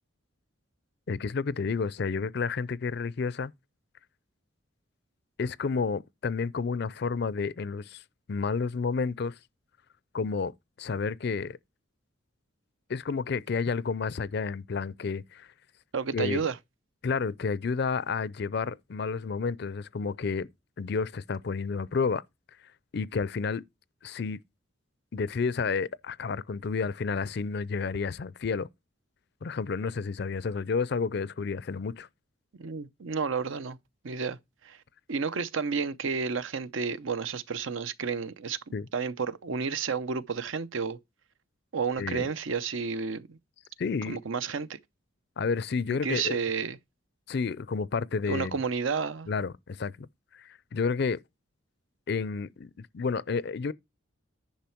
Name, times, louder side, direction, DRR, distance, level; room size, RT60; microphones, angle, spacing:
voice 1, 1.1-3.5 5.4-8.0 8.3-9.3 10.1-10.5 10.8-11.6 12.9-15.5 16.1-16.5 17.0-20.5 20.8-22.2 22.9-23.6 24.0-24.4 25.1-28.7 29.4-32.1 38.7-38.9 42.0-42.3 43.8-44.2 45.4-46.4 47.3-48.6 49.3-50.1 50.3-51.2 52.1-53.7, left 5 dB, 50° left, 0.4 m, -30 dB
voice 2, 15.9-16.6 32.6-33.8 34.0-34.4 34.6-34.8 35.1-41.0 41.7-43.4 44.1-44.8 45.9-46.8 48.3-49.3, right 5 dB, 75° right, 0.6 m, -31 dB
10.5 x 5.6 x 4.4 m
head